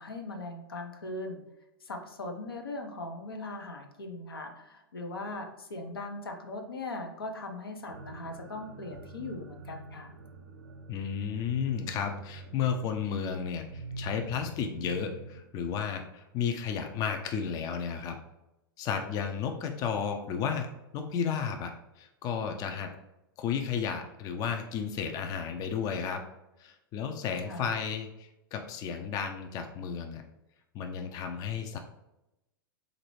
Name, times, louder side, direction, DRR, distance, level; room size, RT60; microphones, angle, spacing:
voice 1, 0.0-1.4 1.8-10.1 27.5-27.7, left 2 dB, 80° left, 3 dB, 0.6 m, -39 dB
sound 1, 7.9-15.4, right 3 dB, 70° right, 0.7 m, -45 dB
voice 2, 10.9-18.2 18.8-20.7 20.9-22.9 23.4-26.2 26.6-30.2 30.7-31.8, left 7 dB, 30° left, 5 dB, 0.4 m, -33 dB
4.1 x 2.6 x 3.0 m, 0.92 s
figure-of-eight pair, 95°, 12 cm